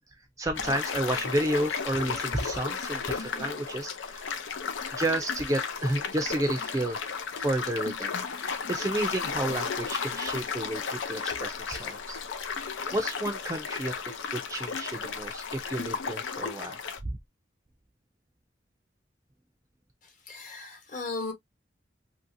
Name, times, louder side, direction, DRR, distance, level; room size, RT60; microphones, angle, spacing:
voice 1, 0.4-4.3 4.9-8.1 8.7-12.5 12.9-17.2, right 1 dB, 20° right, 0.4 m, -31 dB
sound 1, 0.5-17.0, left 6 dB, 90° left, 0.6 m, -34 dB
voice 2, 20.3-21.3, left 3 dB, 45° left, 1.0 m, -36 dB
2.9 x 2.7 x 2.5 m
head